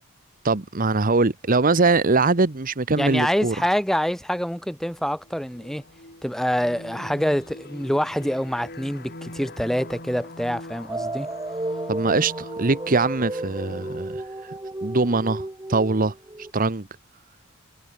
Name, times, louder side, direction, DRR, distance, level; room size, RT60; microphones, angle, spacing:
voice 1, 0.4-3.5 11.9-14.2 14.8-16.1 16.5-16.9, right 3 dB, 40° right, 1.1 m, -22 dB
voice 2, 3.0-5.8 6.2-11.3, equal, ahead, 1.7 m, -26 dB
sound 1, 5.0-14.0, left 1 dB, 45° left, 7.9 m, -42 dB
sound 2, 10.9-16.5, right 2 dB, 15° right, 0.8 m, -33 dB
head